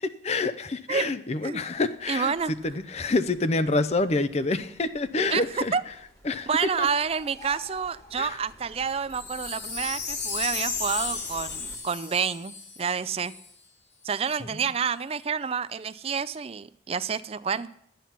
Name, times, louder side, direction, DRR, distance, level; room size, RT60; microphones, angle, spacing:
voice 1, 0.0-2.3 2.6-5.7 6.2-6.5 6.8-6.9 8.2-8.4 14.4-14.5, left 3 dB, 35° left, 12 dB, 0.6 m, -27 dB
sound 1, 1.4-11.8, equal, 15° left, 1.6 m, -51 dB
voice 2, 2.1-2.5 5.3-5.8 6.5-13.3 14.0-17.7, right 6 dB, 30° right, 16 dB, 0.4 m, -29 dB
Wind chime, 9.1-13.5 14.0-14.1, left 5 dB, 60° left, 3.5 m, -34 dB
12.5 x 9.2 x 5.7 m, 0.72 s
head